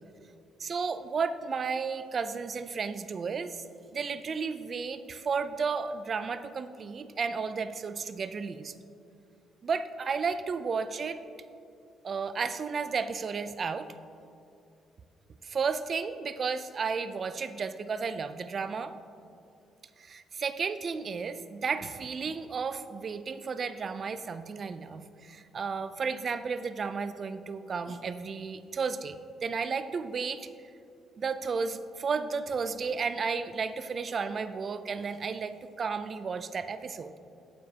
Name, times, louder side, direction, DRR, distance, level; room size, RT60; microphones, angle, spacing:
voice 1, 0.6-3.6 3.9-8.7 9.6-11.2 12.0-13.9 15.4-19.0 20.0-29.2 29.4-30.5 31.2-37.2, right 5 dB, 45° right, 12 dB, 0.4 m, -33 dB
9.4 x 7.4 x 2.8 m, 2.5 s
cardioid pair, 90°, 0 cm